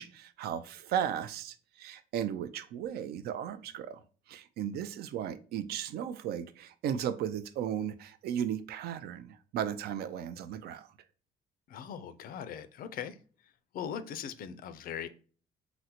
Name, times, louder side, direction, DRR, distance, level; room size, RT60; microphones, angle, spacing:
voice 1, 0.0-4.0 4.3-10.9, right 9 dB, 70° right, 0.4 m, -35 dB
voice 2, 11.7-13.2 13.7-15.1, left 8 dB, 60° left, 0.4 m, -40 dB
3.8 x 2.1 x 2.8 m
cardioid pair, 110°, 17 cm